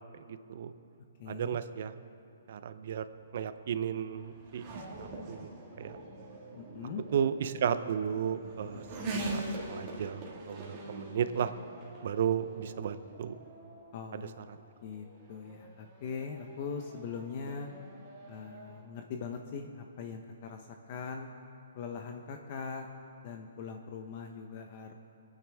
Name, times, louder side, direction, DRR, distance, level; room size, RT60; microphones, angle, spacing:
voice 1, 0.3-0.7 1.3-1.9 2.5-3.1 3.3-4.6 5.0-5.5 5.8-6.0 7.1-8.8 9.3-9.4 9.7-11.5 12.0-13.4 14.1-14.2, right 8 dB, 50° right, 12 dB, 0.6 m, -33 dB
voice 2, 1.2-1.6 6.5-7.0 9.1-9.4 13.9-14.4 14.8-17.7 18.3-21.3 21.7-22.9 23.2-25.0, left 5 dB, 40° left, 4 dB, 0.7 m, -41 dB
Race car auto racing / Accelerating revving vroom, 2.6-18.9, right 2 dB, 25° right, 2.0 m, -44 dB
26.0 x 9.1 x 3.5 m, 2.6 s
hypercardioid pair, 160°, 0 cm